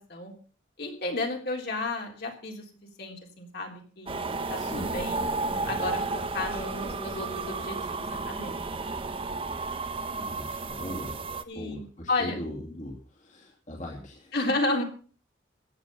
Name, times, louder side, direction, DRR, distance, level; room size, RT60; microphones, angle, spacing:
voice 1, 0.8-5.2 5.7-6.0 6.3-8.7 11.5-12.4 14.3-14.8, left 2 dB, 55° left, 1 dB, 3.6 m, -32 dB
sound 1, 4.1-11.4, right 3 dB, 30° right, 0.9 m, -32 dB
voice 2, 4.5-5.9 10.2-11.2 11.5-14.3, left 1 dB, 40° left, -2 dB, 2.7 m, -40 dB
15.5 x 10.0 x 5.4 m, 0.41 s
head